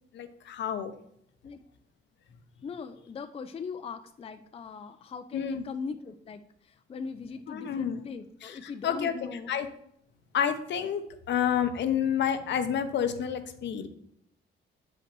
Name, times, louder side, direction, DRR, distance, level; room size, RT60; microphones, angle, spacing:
voice 1, 0.1-0.9 5.3-5.6 7.5-8.0 8.4-9.1 9.5-9.7 10.3-13.9, left 8 dB, 65° left, 9 dB, 0.7 m, -29 dB
voice 2, 2.6-9.5, left 5 dB, 30° left, 8 dB, 0.4 m, -40 dB
7.4 x 5.1 x 3.1 m, 0.73 s
cardioid pair, 90°, 20 cm